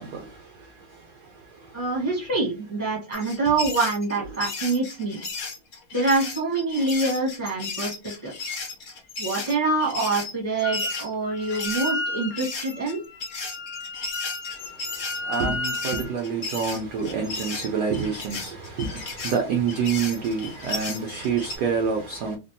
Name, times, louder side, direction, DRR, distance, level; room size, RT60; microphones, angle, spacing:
voice 1, 0.0-1.9 4.2-4.4 14.7-22.4, right 6 dB, 75° right, 0.9 m, -28 dB
voice 2, 1.7-5.2 5.9-8.6 9.2-13.0, right 3 dB, 10° left, 0.7 m, -26 dB
sound 1, 3.1-11.9 12.4-21.6, left 3 dB, 55° left, 0.9 m, -35 dB
Wind instrument woodwind instrument, 10.6-11.0 11.3-16.1, left 2 dB, 90° left, 0.7 m, -33 dB
3.5 x 2.2 x 2.6 m
omnidirectional pair, 2.3 m